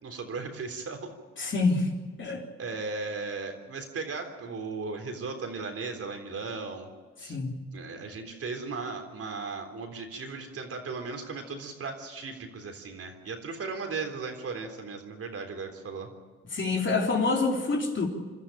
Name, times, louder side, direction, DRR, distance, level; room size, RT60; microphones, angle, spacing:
voice 1, 0.0-1.1 2.2-2.3 2.6-6.9 7.2-7.4 7.7-16.1, right 4 dB, 50° right, 4 dB, 3.6 m, -36 dB
voice 2, 1.4-1.9 2.2-2.4 7.2-7.5 16.5-18.1, left 3 dB, 40° left, 0 dB, 3.7 m, -26 dB
27.0 x 13.0 x 8.9 m, 1.4 s
cardioid pair, 90°, 30 cm